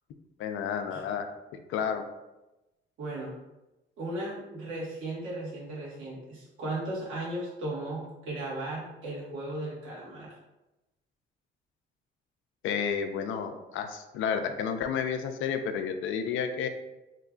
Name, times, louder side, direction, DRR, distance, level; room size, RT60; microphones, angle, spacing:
voice 1, 0.4-1.3 1.5-2.0 12.6-16.7, left 7 dB, 80° left, 7 dB, 0.4 m, -31 dB
voice 2, 3.0-3.3 4.0-10.3, right 1 dB, 85° right, -6 dB, 1.4 m, -36 dB
3.1 x 2.3 x 3.7 m, 0.99 s
cardioid pair, 90°, 20 cm